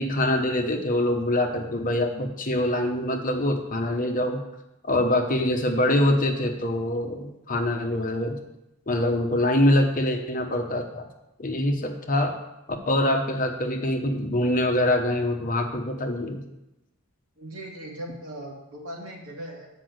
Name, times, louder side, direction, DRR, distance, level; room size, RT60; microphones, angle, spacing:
voice 1, 0.0-4.4 4.8-8.4 8.9-11.1 11.4-12.3 12.9-16.4, left 1 dB, 40° left, 4 dB, 1.0 m, -24 dB
voice 2, 17.4-19.7, right 1 dB, 70° right, -1 dB, 2.3 m, -38 dB
8.5 x 5.2 x 7.8 m, 0.93 s
head